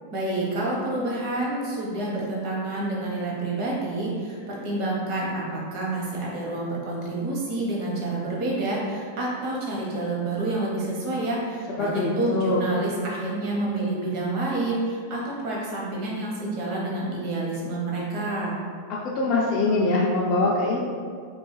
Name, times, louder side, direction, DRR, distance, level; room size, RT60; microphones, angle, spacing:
voice 1, 0.1-18.6, right 2 dB, 45° right, -4 dB, 0.8 m, -28 dB
voice 2, 11.8-12.6 18.9-20.8, left 2 dB, 30° left, -5 dB, 0.3 m, -23 dB
2.6 x 2.3 x 3.1 m, 2.1 s
supercardioid pair, 150°, 0 cm